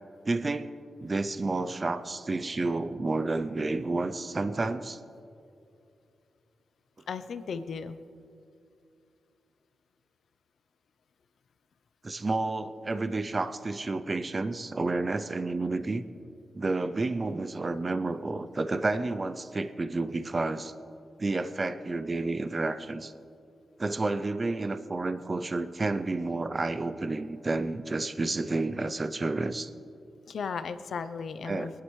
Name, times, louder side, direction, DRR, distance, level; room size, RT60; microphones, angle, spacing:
voice 1, 0.3-0.7 1.0-5.0 12.0-16.0 16.5-20.7 21.2-23.1 23.8-29.7 31.4-31.7, right 3 dB, 25° right, 11 dB, 0.4 m, -30 dB
voice 2, 7.1-8.0 30.3-31.8, left 5 dB, 65° left, 11 dB, 0.5 m, -35 dB
22.0 x 11.0 x 3.2 m, 2.6 s
wide cardioid pair, 160°, 0 cm